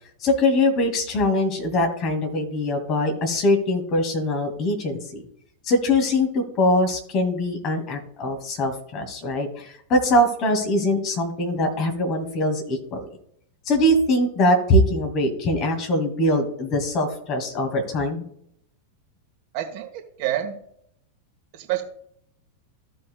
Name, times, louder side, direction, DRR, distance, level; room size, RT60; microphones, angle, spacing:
voice 1, 0.2-5.2 5.6-13.0 13.6-18.3, left 1 dB, 35° left, 3 dB, 2.1 m, -22 dB
voice 2, 19.5-20.6 21.5-21.8, right 12 dB, 45° right, 5 dB, 1.2 m, -28 dB
15.0 x 5.3 x 2.3 m, 0.70 s
figure-of-eight pair, 90°, 0 cm